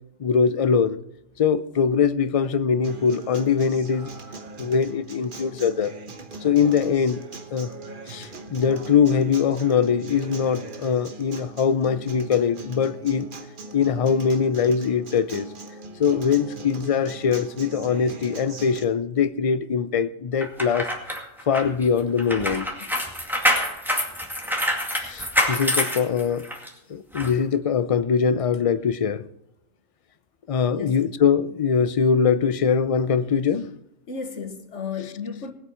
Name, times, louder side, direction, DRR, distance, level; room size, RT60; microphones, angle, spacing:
voice 1, 0.2-1.0 1.4-4.1 4.6-5.9 6.4-7.2 7.5-7.7 8.1-13.3 13.7-15.5 16.0-20.9 21.5-22.7 25.0-26.5 26.9-29.2 30.5-33.7, left 6 dB, 40° left, 0.5 m, -22 dB
Acoustic guitar, 2.8-18.8, right 3 dB, 50° right, 1.2 m, -40 dB
sound 1, 20.4-26.7 27.1-27.3, equal, ahead, 2.1 m, -26 dB
voice 2, 30.7-31.0 34.1-35.5, left 5 dB, 90° left, 1.7 m, -34 dB
19.5 x 8.3 x 4.4 m
omnidirectional pair, 1.2 m